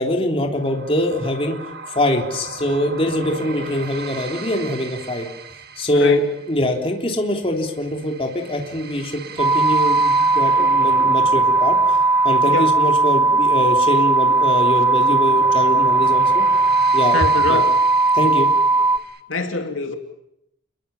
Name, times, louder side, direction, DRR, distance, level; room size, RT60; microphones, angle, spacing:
voice 1, 0.0-1.6 2.0-5.3 5.8-6.2 6.5-12.0 12.2-16.4 16.9-17.2 17.5-17.6 18.1-18.5, left 1 dB, 30° left, 1 dB, 3.4 m, -23 dB
sound 1, 0.5-19.2, right 4 dB, 55° right, 1.9 m, -37 dB
voice 2, 5.9-6.3 12.5-12.7 17.1-17.7 18.2-18.4 19.3-19.9, left 3 dB, 75° left, 4 dB, 2.7 m, -24 dB
sound 2, 9.4-19.0, right 3 dB, 15° right, 1.1 m, -17 dB
29.5 x 22.0 x 7.2 m, 0.80 s
head